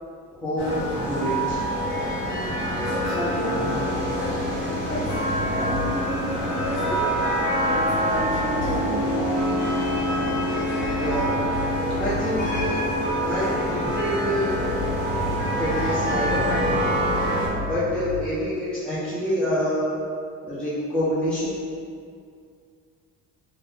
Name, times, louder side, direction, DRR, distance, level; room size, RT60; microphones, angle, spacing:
voice 1, 0.3-1.6 11.0-11.3 12.0-12.9 13.2-14.5 15.6-16.8 17.6-19.9 20.4-21.5, equal, 5° left, -11 dB, 0.8 m, -27 dB
sound 1, 0.6-17.5, equal, 60° left, 1.2 m, -25 dB
voice 2, 2.8-3.9 4.9-5.2 5.5-7.1 7.5-9.2, equal, 35° left, -9 dB, 1.3 m, -31 dB
sound 2, 5.3-6.1 8.2-9.0 9.8-12.8 14.5-18.4, left 3 dB, 90° right, 0.6 m, -35 dB
2.6 x 2.5 x 3.5 m, 2.2 s
cardioid pair, 85°, 37 cm